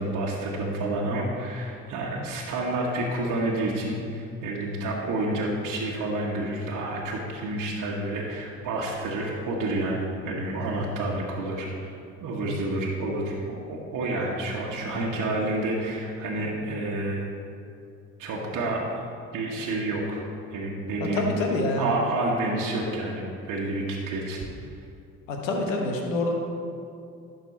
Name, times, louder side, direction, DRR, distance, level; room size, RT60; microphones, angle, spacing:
voice 1, 0.0-17.3 18.2-18.8 19.3-20.2 20.5-21.2 21.8-24.4, right 2 dB, 50° right, -3 dB, 1.3 m, -29 dB
voice 2, 21.0-21.9 25.3-26.3, left 2 dB, 80° left, 1 dB, 1.1 m, -26 dB
11.5 x 4.1 x 4.2 m, 2.5 s
hypercardioid pair, 60°, 38 cm